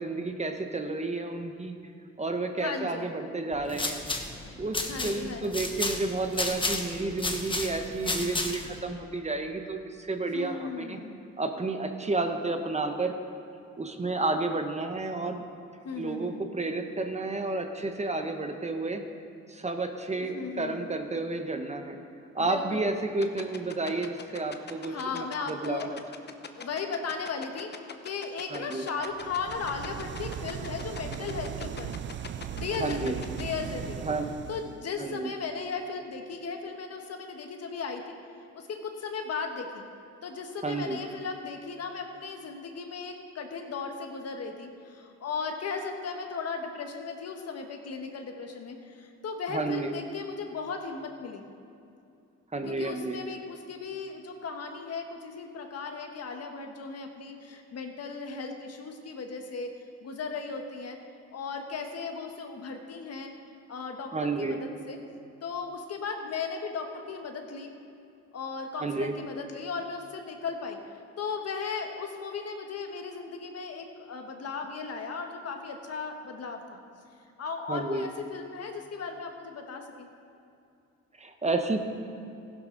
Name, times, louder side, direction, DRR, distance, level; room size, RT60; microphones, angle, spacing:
voice 1, 0.0-1.7 2.2-4.0 4.6-11.0 11.4-13.2 13.8-15.4 16.0-19.0 19.5-22.0 22.3-26.0 28.5-28.8 32.7-33.2 34.0-34.3 35.0-35.3 40.6-41.0 49.5-49.9 52.5-53.2 64.1-64.6 68.8-69.1 77.7-78.1 81.2-81.8, right 3 dB, 20° right, 5 dB, 1.0 m, -31 dB
voice 2, 2.6-3.1 4.9-5.7 10.3-11.2 15.8-16.4 20.3-20.9 22.4-23.1 24.9-25.9 26.5-27.7 28.0-32.0 32.5-34.1 34.5-38.2 38.5-39.9 40.2-51.4 52.6-61.0 61.3-63.3 63.7-65.0 65.4-67.7 68.3-70.8 71.2-76.8 77.4-80.1, left 5 dB, 55° left, 4 dB, 1.4 m, -36 dB
sound 1, 3.5-8.8, left 2 dB, 15° left, 1.2 m, -32 dB
sound 2, 23.2-33.4, left 6 dB, 35° left, 0.8 m, -41 dB
sound 3, 29.1-34.8, right 9 dB, 40° right, 0.4 m, -38 dB
15.5 x 11.0 x 3.9 m, 2.6 s
cardioid pair, 90°, 30 cm